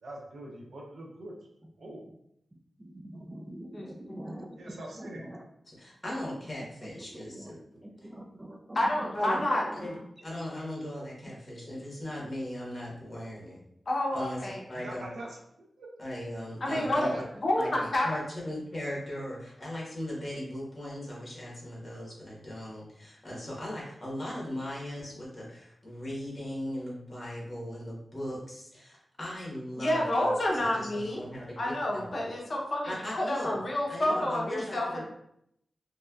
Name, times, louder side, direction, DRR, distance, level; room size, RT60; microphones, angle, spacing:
voice 1, 0.0-1.3 1.8-2.0 4.6-5.2 14.7-15.3 15.8-15.9 16.7-17.2, right 1 dB, 85° right, -1 dB, 0.7 m, -42 dB
voice 2, 2.8-5.4 7.0-7.5 7.8-10.1 11.3-11.4, right 1 dB, 20° right, 3 dB, 0.4 m, -44 dB
voice 3, 5.7-7.6 9.1-9.4 9.8-9.9 10.2-13.6 14.1-14.4 14.7-15.0 16.0-17.1 17.5-32.2 32.8-33.6 33.9-35.0, left 1 dB, 35° left, -5 dB, 1.3 m, -38 dB
voice 4, 8.8-9.6 13.9-14.6 16.6-18.1 29.8-31.2 31.6-35.0, left 1 dB, 55° left, -2 dB, 0.7 m, -29 dB
3.1 x 2.8 x 2.3 m, 0.76 s
wide cardioid pair, 75°, 0 cm